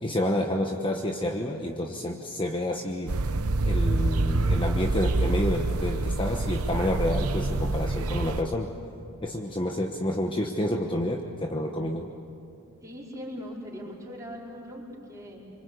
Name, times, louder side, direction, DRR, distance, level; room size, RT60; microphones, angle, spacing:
voice 1, 0.0-3.1 3.6-8.7 9.2-12.1, left 1 dB, 20° left, 2 dB, 1.1 m, -29 dB
sound 1, 3.1-8.4, right 2 dB, 85° right, 0.9 m, -26 dB
voice 2, 12.8-15.5, equal, 15° right, -4 dB, 4.8 m, -40 dB
26.5 x 24.5 x 8.3 m, 2.6 s
head